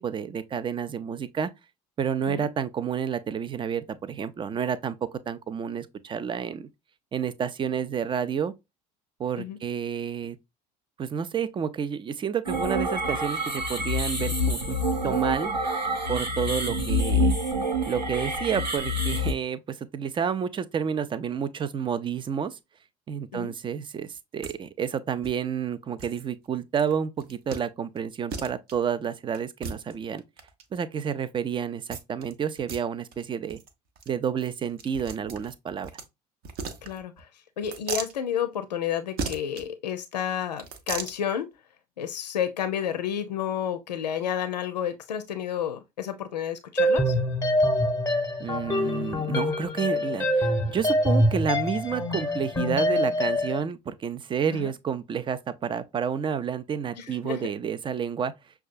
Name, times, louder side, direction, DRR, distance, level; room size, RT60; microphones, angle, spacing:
voice 1, 0.0-1.5 2.0-6.7 7.1-8.5 9.2-10.4 11.0-14.8 15.0-15.5 16.1-17.3 17.9-22.6 23.1-30.2 30.7-33.6 34.1-35.9 48.4-58.3, right 7 dB, 25° right, 0.5 m, -30 dB
sound 1, 12.4-19.3, equal, 85° right, 0.9 m, -27 dB
sound 2, 24.4-24.5 24.8-24.9 25.2-25.3 26.0-26.3 26.7-26.9 27.2-27.6 28.0-28.1 28.3-28.7 29.3-30.6 31.9-32.3 32.6-32.8 33.1-33.2 33.5-33.7 34.0-34.1 34.4-36.1 36.4-37.2 37.6-38.1 39.2-39.6 40.5-41.2, right 5 dB, 45° right, 0.8 m, -36 dB
voice 2, 36.8-37.3 37.6-41.5 42.0-47.2 54.5-54.7 57.0-57.5, left 9 dB, 75° left, 0.5 m, -31 dB
sound 3, 46.8-53.6, equal, 15° left, 1.0 m, -25 dB
6.1 x 2.3 x 2.4 m
figure-of-eight pair, 60°, 21 cm